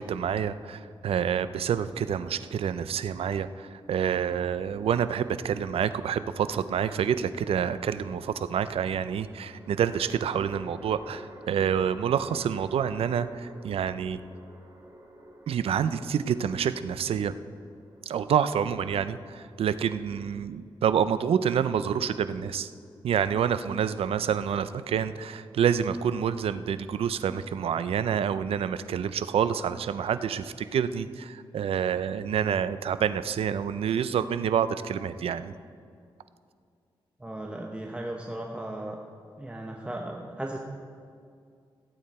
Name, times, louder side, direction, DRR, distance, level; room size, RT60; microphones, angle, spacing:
voice 1, 0.0-14.2 15.5-17.3 18.1-22.7 23.0-35.5, right 8 dB, 85° right, 13 dB, 0.5 m, -28 dB
sound 1, 9.1-20.4, right 1 dB, 30° right, 3.2 m, -51 dB
voice 2, 37.2-39.0 39.4-40.6, right 1 dB, 10° right, 0 dB, 1.0 m, -36 dB
16.0 x 8.8 x 4.3 m, 2.3 s
cardioid pair, 70°, 10 cm